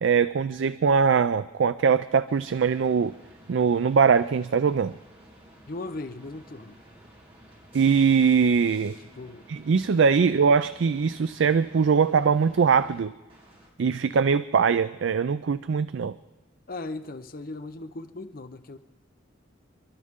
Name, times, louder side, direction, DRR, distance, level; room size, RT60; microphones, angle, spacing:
voice 1, 0.0-3.1 3.5-5.0 7.7-9.0 9.5-13.1 13.8-16.2, right 6 dB, 65° right, 14 dB, 0.4 m, -22 dB
sound 1, 2.3-13.0 13.3-13.7, right 1 dB, 30° right, 3.4 m, -52 dB
voice 2, 5.7-6.8 9.1-9.5 16.7-18.8, left 2 dB, 45° left, 9 dB, 0.7 m, -37 dB
29.5 x 12.0 x 3.6 m, 1.2 s
head